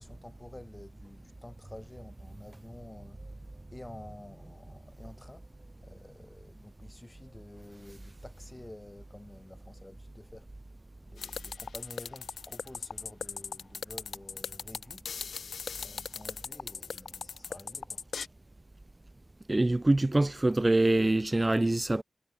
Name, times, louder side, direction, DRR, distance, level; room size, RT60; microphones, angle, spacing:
voice 1, 0.0-3.2 3.7-5.5 5.8-10.5 11.0-15.1 15.8-18.0, left 1 dB, 20° left, 2.3 m, -50 dB
sound 1, 11.2-18.3, left 6 dB, 85° left, 0.4 m, -39 dB
voice 2, 19.5-22.0, right 2 dB, 25° right, 0.4 m, -25 dB
cardioid pair, 65°, 0 cm